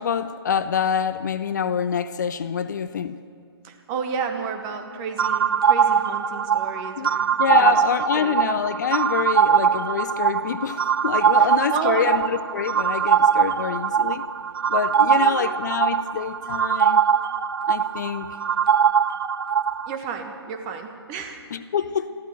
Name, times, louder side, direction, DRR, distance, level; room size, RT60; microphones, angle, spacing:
voice 1, 0.0-3.2 7.0-7.1 7.4-14.2 14.7-17.0 17.7-18.3 21.5-22.1, left 7 dB, 45° left, 12 dB, 0.6 m, -26 dB
voice 2, 3.6-7.7 8.1-8.4 11.4-12.1 15.2-15.6 19.9-21.4, right 6 dB, 20° right, 6 dB, 1.3 m, -31 dB
sound 1, 5.2-20.0, right 7 dB, 60° right, 0.4 m, -21 dB
14.5 x 13.0 x 7.7 m, 2.2 s
figure-of-eight pair, 135°, 14 cm